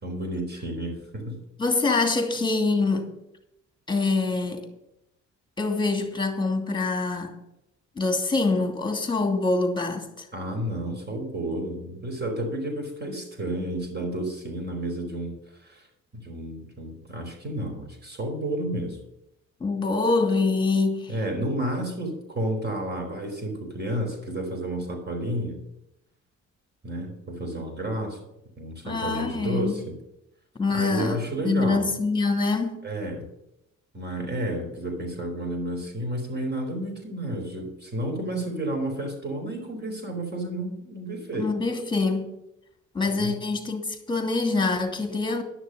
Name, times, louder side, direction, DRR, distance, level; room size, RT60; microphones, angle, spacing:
voice 1, 0.0-1.4 10.3-15.3 15.6-15.9 16.1-19.0 21.1-25.6 26.8-28.2 28.6-30.0 30.7-31.9 32.8-33.3 33.9-41.5 43.1-43.3, right 1 dB, 35° right, 2 dB, 4.7 m, -31 dB
voice 2, 1.6-3.1 3.9-4.7 5.6-7.4 8.0-10.3 19.6-21.1 28.8-29.7 30.6-31.2 31.4-32.9 41.4-42.3 42.9-45.4, left 3 dB, 15° left, 6 dB, 2.6 m, -25 dB
11.5 x 6.6 x 7.8 m, 0.85 s
cardioid pair, 90°, 30 cm